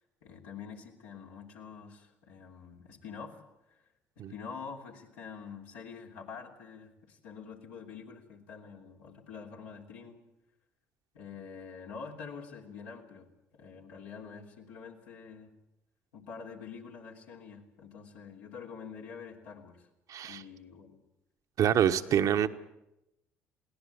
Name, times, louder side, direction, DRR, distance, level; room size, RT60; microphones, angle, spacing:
voice 1, 0.2-3.4 3.7-3.8 4.3-10.2 11.1-15.5 16.1-19.9 20.2-21.0 22.0-22.3, left 6 dB, 80° left, -1 dB, 3.3 m, -46 dB
voice 2, 20.1-20.4 21.6-22.5, right 9 dB, 60° right, 8 dB, 1.1 m, -26 dB
21.5 x 17.5 x 8.6 m, 0.91 s
hypercardioid pair, 60°, 7 cm